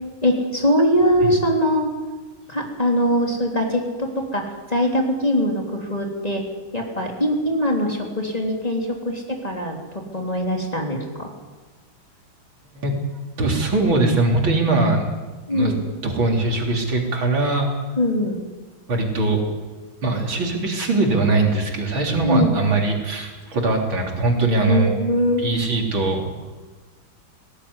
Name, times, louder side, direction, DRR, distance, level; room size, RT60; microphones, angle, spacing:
voice 1, 0.2-1.9 2.5-6.4 6.7-11.3 15.5-15.8 18.0-18.4 22.2-22.5 24.6-25.4, equal, 20° left, 1 dB, 3.4 m, -22 dB
voice 2, 13.4-15.1 15.5-15.7 16.0-17.7 18.9-19.4 20.0-24.9 25.4-26.5, right 2 dB, 75° right, 1 dB, 4.3 m, -21 dB
18.5 x 18.0 x 9.8 m, 1.3 s
omnidirectional pair, 2.2 m